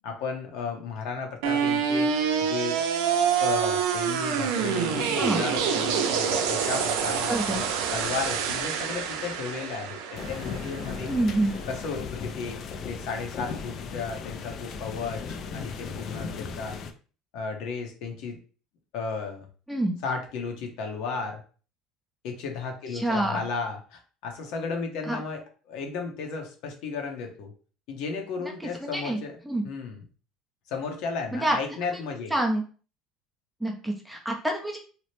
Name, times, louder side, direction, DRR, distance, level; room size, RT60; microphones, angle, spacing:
voice 1, 0.0-2.1 2.4-2.8 3.4-11.1 11.7-16.8 17.3-18.4 18.9-19.5 20.0-21.4 22.2-27.5 27.9-29.4 29.6-30.0 30.7-32.4, left 5 dB, 70° left, 3 dB, 0.7 m, -34 dB
sound 1, 1.4-11.5, right 7 dB, 85° right, 0.4 m, -27 dB
voice 2, 7.3-7.6 11.1-11.6 19.7-19.9 22.9-23.4 25.1-25.2 28.4-29.6 31.3-31.6 31.9-32.0 32.3-32.6 33.6-34.8, right 1 dB, 5° right, 1 dB, 0.5 m, -27 dB
sound 2, 10.1-16.9, left 5 dB, 45° left, 0.4 m, -36 dB
2.9 x 2.0 x 3.1 m, 0.39 s
cardioid pair, 125°, 0 cm